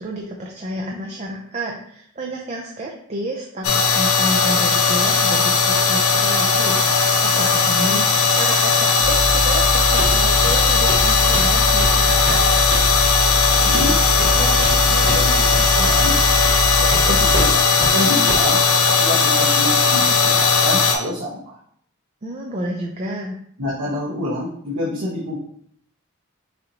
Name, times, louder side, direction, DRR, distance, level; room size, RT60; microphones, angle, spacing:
voice 1, 0.0-12.4 22.2-23.4, right 1 dB, 30° right, 0 dB, 0.4 m, -30 dB
sound 1, 3.6-21.0, left 4 dB, 75° left, 0.7 m, -17 dB
sound 2, 9.0-17.5, equal, 35° left, 0.6 m, -23 dB
Walk footsteps, 10.0-10.2 10.4-10.6 10.9-11.1 11.3-12.0 12.3-12.4 12.7-13.0 13.7-13.9 14.2-14.8 15.1-15.2 15.5-15.6 16.0-16.1 16.5-16.6 16.9-17.0 17.3-17.5 17.8-17.9 18.3-18.5, right 1 dB, 55° right, 1.3 m, -27 dB
voice 2, 13.5-16.1 16.7-18.6 19.0-21.5 23.6-25.4, left 1 dB, 75° right, -7 dB, 1.1 m, -28 dB
6.2 x 2.6 x 2.9 m, 0.65 s
head